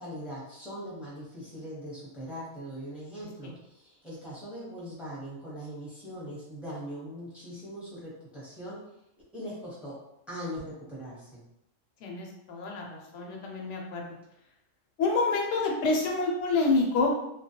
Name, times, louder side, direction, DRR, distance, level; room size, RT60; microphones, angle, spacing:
voice 1, 0.0-8.8 9.3-9.9 10.3-11.4, equal, ahead, -8 dB, 0.7 m, -41 dB
voice 2, 12.0-14.1 15.0-17.1, left 3 dB, 70° left, 0 dB, 0.9 m, -27 dB
2.3 x 2.1 x 2.8 m, 0.81 s
omnidirectional pair, 1.4 m